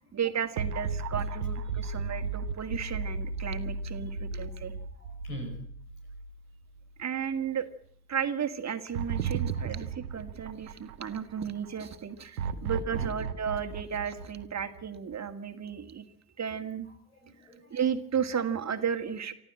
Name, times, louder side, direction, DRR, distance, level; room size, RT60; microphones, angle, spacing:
voice 1, 0.1-4.7 7.0-7.7 8.1-16.1 16.4-16.9 17.7-19.3, right 7 dB, 40° right, 8 dB, 1.9 m, -33 dB
sound 1, 0.6-6.9 7.3-7.4 8.9-11.4 12.4-15.1, right 5 dB, 90° right, 1.0 m, -35 dB
voice 2, 4.1-5.5 9.5-9.8 11.8-11.9 12.5-13.1 17.1-17.8, right 1 dB, 90° left, 1 dB, 5.8 m, -46 dB
25.0 x 14.0 x 7.7 m, 0.64 s
hypercardioid pair, 50°, 43 cm